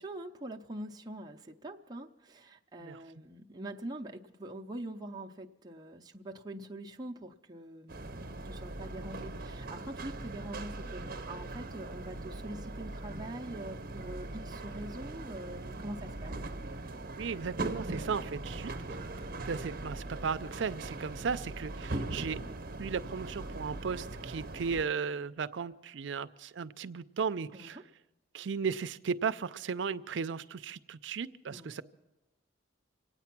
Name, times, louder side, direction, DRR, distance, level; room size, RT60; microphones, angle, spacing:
voice 1, 0.0-16.4 27.5-27.8 31.5-31.8, right 1 dB, 20° right, 0 dB, 0.6 m, -44 dB
sound 1, 7.9-24.8, right 2 dB, 50° right, 0.9 m, -40 dB
voice 2, 17.2-19.0 19.5-22.4 22.8-27.8 28.3-31.8, right 5 dB, 70° right, 14 dB, 0.5 m, -36 dB
26.0 x 9.2 x 6.0 m, 1.0 s
head